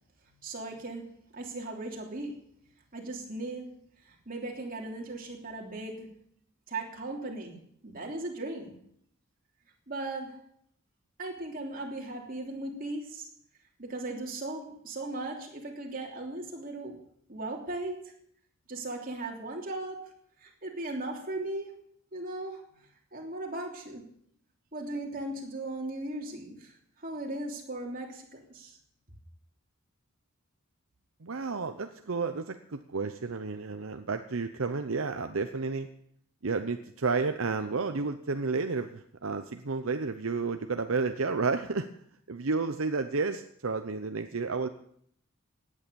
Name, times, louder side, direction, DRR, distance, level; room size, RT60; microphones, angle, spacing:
voice 1, 0.4-1.1 1.3-2.4 2.9-3.7 4.0-6.1 6.7-7.6 7.8-8.7 9.9-10.4 11.2-13.3 13.8-17.0 17.3-18.0 18.7-20.1 20.4-21.7 22.1-22.6 23.1-24.1 24.7-28.8, right 2 dB, 40° right, 1 dB, 3.2 m, -37 dB
voice 2, 31.2-35.9 36.4-41.9 42.3-44.7, right 4 dB, 70° right, 8 dB, 0.8 m, -31 dB
17.0 x 10.0 x 7.0 m, 0.68 s
head